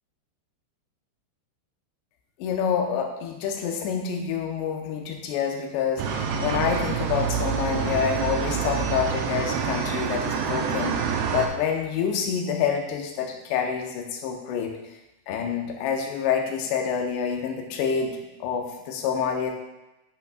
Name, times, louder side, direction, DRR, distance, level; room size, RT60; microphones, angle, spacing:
voice 1, 2.4-14.7 15.3-19.5, left 7 dB, 85° left, 3 dB, 2.9 m, -27 dB
sound 1, 6.0-11.5, right 6 dB, 85° right, 2.2 m, -27 dB
10.5 x 5.8 x 2.3 m, 0.97 s
omnidirectional pair, 5.0 m